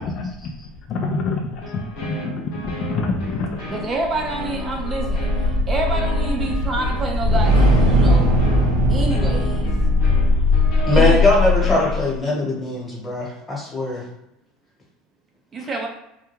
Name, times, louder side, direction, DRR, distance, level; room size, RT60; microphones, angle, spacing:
voice 1, 0.0-3.8 8.4-9.0 9.5-11.0 11.6-11.9 15.6-15.7, left 3 dB, 45° left, 1 dB, 0.3 m, -29 dB
sound 1, 1.6-11.0, left 2 dB, 65° left, 0.8 m, -34 dB
voice 2, 3.7-8.4 8.9-9.7 10.9-11.2 15.5-15.9, right 2 dB, 25° right, 1 dB, 0.4 m, -27 dB
sound 2, 4.0-12.1, left 1 dB, 90° right, 0.7 m, -19 dB
voice 3, 10.8-14.0, left 1 dB, 10° left, -5 dB, 1.1 m, -21 dB
2.2 x 2.2 x 3.0 m, 0.84 s
supercardioid pair, 115°, 0 cm